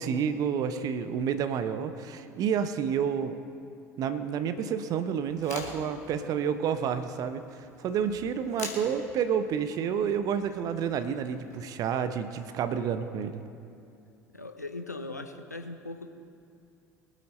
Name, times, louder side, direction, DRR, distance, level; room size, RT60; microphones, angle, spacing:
voice 1, 0.0-3.4 4.0-13.4, right 7 dB, 45° right, 10 dB, 0.8 m, -29 dB
sound 1, 5.2-11.6, left 3 dB, 70° left, 2.1 m, -45 dB
voice 2, 14.3-16.1, left 2 dB, 85° left, 6 dB, 0.8 m, -39 dB
23.5 x 8.4 x 4.3 m, 2.5 s
figure-of-eight pair, 65°, 9 cm